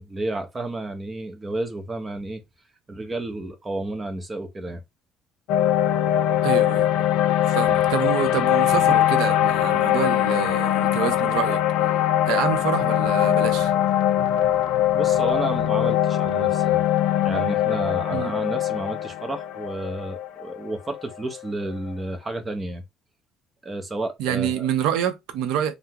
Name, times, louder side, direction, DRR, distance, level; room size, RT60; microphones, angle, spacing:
voice 1, 0.0-2.4 2.9-4.8 14.9-16.8 17.2-22.8 23.6-24.7, right 2 dB, 15° right, 0.5 m, -31 dB
sound 1, 5.5-21.7, left 12 dB, 75° left, 0.4 m, -22 dB
voice 2, 6.4-6.9 7.5-11.6 12.3-13.7 18.1-18.3 24.2-25.7, right 9 dB, 85° right, 0.6 m, -27 dB
3.5 x 2.0 x 2.7 m
cardioid pair, 160°, 0 cm